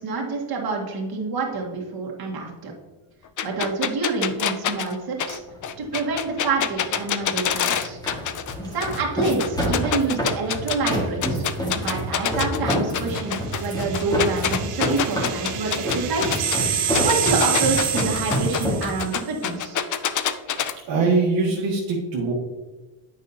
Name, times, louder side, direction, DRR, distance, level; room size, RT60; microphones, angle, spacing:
voice 1, 0.0-2.7 3.4-5.4 5.8-8.0 8.7-11.5 11.7-16.4 16.8-19.8, right 4 dB, 45° right, -2 dB, 1.9 m, -27 dB
sound 1, 3.4-8.5 8.8-10.9 11.2-16.6 16.9-20.7, left 9 dB, 40° left, 0.5 m, -26 dB
sound 2, 5.4-18.8, equal, 10° left, 1.8 m, -28 dB
sound 3, 13.3-19.2, right 8 dB, 85° right, 1.0 m, -28 dB
voice 2, 20.5-22.3, right 4 dB, 65° right, -4 dB, 1.5 m, -23 dB
8.9 x 5.4 x 2.9 m, 1.2 s
cardioid pair, 130°, 49 cm